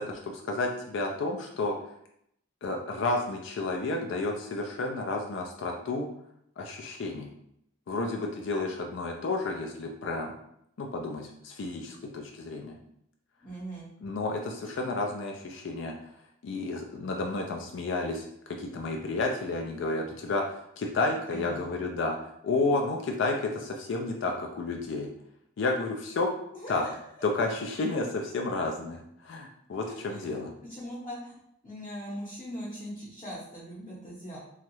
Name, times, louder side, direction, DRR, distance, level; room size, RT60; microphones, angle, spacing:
voice 1, 0.0-1.8 2.6-6.1 6.6-7.3 7.9-10.3 10.8-12.7 14.0-15.9 16.4-18.3 18.6-22.2 22.4-25.1 25.6-26.3 26.7-26.9 27.2-30.5, left 3 dB, 60° left, 2 dB, 0.3 m, -31 dB
voice 2, 13.4-13.9 21.0-21.7 26.5-26.9 29.8-30.2 30.7-31.4 31.6-34.4, equal, 30° left, -7 dB, 0.8 m, -40 dB
3.0 x 2.3 x 3.0 m, 0.74 s
head